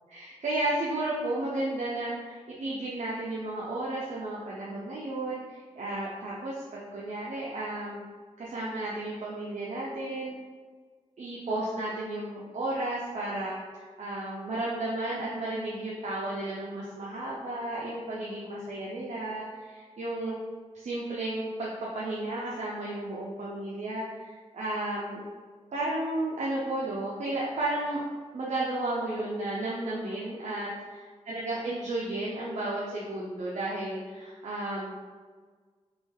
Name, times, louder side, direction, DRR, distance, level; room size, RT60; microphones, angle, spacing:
voice 1, 0.1-8.0 8.4-10.4 11.2-20.4 20.7-25.2 25.7-28.0 28.3-31.0 31.3-34.9, right 2 dB, 70° right, -5 dB, 0.6 m, -33 dB
3.5 x 3.0 x 3.6 m, 1.5 s
wide cardioid pair, 130°, 12 cm